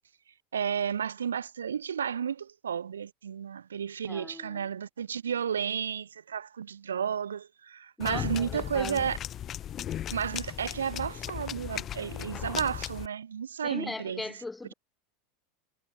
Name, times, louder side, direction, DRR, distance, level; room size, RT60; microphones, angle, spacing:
voice 1, 0.5-9.2 10.1-14.3, right 8 dB, 75° right, 1.4 m, -32 dB
voice 2, 4.1-4.7 8.0-9.1 13.6-14.7, left 2 dB, 10° left, 3.8 m, -39 dB
sound 1, 8.0-13.1, left 11 dB, 35° left, 0.3 m, -36 dB
figure-of-eight pair, 85°, 0 cm